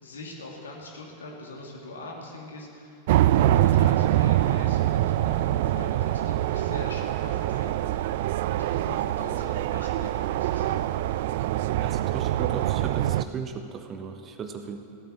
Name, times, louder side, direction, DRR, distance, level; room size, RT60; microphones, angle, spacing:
voice 1, 0.0-8.2 8.5-11.0, left 2 dB, 70° left, -1 dB, 2.6 m, -42 dB
sound 1, 3.1-13.2, right 13 dB, 55° right, 0.3 m, -24 dB
voice 2, 11.8-14.8, right 6 dB, 25° right, 6 dB, 1.1 m, -36 dB
15.5 x 9.0 x 7.4 m, 2.6 s
figure-of-eight pair, 90°, 0 cm